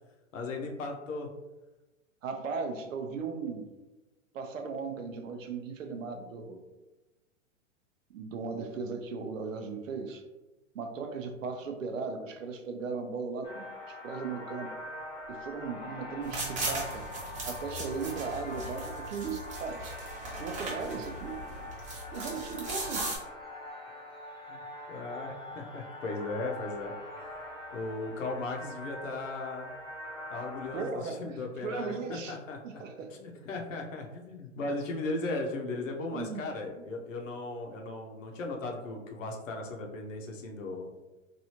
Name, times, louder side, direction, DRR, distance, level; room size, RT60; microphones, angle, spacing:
voice 1, 0.3-1.3 24.5-24.6 24.9-26.9 27.7-29.7 30.3-32.8 33.1-40.9, left 2 dB, 75° left, 2 dB, 0.8 m, -37 dB
voice 2, 2.2-3.7 4.3-6.6 8.1-10.2 10.7-14.8 15.3-17.0 17.4-20.0 20.4-21.4 22.1-23.1 30.7-31.4 31.6-32.4 32.6-33.5 35.7-35.8 36.1-36.4 36.8-36.9, right 5 dB, 75° right, 5 dB, 0.7 m, -37 dB
sound 1, 13.4-30.9, left 1 dB, 15° left, 0.6 m, -43 dB
sound 2, 16.2-23.2, right 2 dB, 20° right, 0.9 m, -38 dB
3.2 x 2.6 x 2.8 m, 1.1 s
hypercardioid pair, 115°, 39 cm